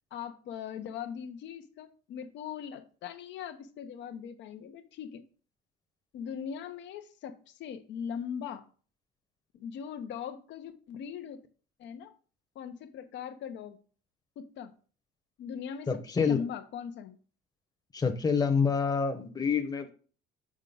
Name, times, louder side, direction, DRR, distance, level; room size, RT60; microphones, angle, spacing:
voice 1, 0.1-5.2 6.1-8.6 9.5-11.4 11.8-12.1 12.5-13.8 14.4-14.7 15.4-17.2, left 7 dB, 65° left, 1.0 m, -40 dB
voice 2, 15.9-16.4 17.9-19.9, left 5 dB, 20° left, 1.0 m, -27 dB
6.3 x 4.9 x 4.0 m
supercardioid pair, 85°, 20 cm